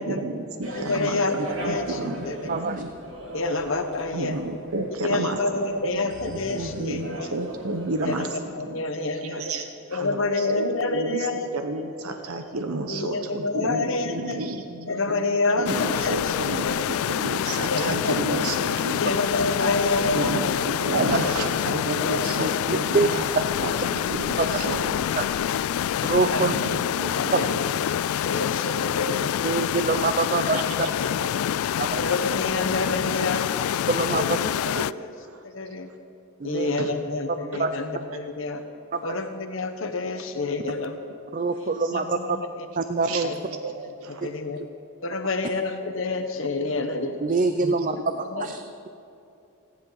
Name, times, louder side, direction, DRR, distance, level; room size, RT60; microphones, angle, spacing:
voice 1, 0.0-2.9 4.1-5.4 5.8-8.8 9.1-19.1 20.1-25.0 26.3-27.6 28.8-28.9 30.5-30.6 33.2-33.4 33.7-33.8 34.6-35.4 35.7-35.8 36.8-36.9 37.5-37.6 38.1-38.2 43.1-44.3 46.1-46.2 47.6-48.0, right 2 dB, 85° right, 5 dB, 1.0 m, -32 dB
sound 1, 0.6-8.3, right 1 dB, 65° right, 2.6 m, -39 dB
voice 2, 0.7-1.4 1.6-2.0 2.2-2.5 3.3-4.4 5.0-7.4 8.0-9.4 9.9-11.5 12.9-14.4 14.9-16.9 17.7-18.2 19.0-20.5 21.0-21.3 22.0-22.3 26.3-27.7 28.2-29.3 30.4-31.5 32.0-33.5 33.9-34.6 34.9-35.1 35.4-35.9 36.4-38.6 39.0-41.0 41.5-42.7 43.2-43.3 44.2-44.6 45.0-47.2 47.9-48.0 48.3-48.5, left 3 dB, 65° left, 6 dB, 1.2 m, -28 dB
voice 3, 2.5-2.8 22.9-23.1 24.4-24.5 25.2-25.3 26.0-26.5 29.4-30.6 31.8-32.0 33.9-34.2 36.4-36.7 37.6-37.7 38.9-39.0 41.3-42.4 42.8-43.3 47.2-48.1 48.4-48.6, right 4 dB, 35° right, 9 dB, 0.4 m, -24 dB
sound 2, 15.7-34.9, left 10 dB, 85° left, 0.3 m, -26 dB
29.5 x 10.5 x 4.1 m, 2.7 s
head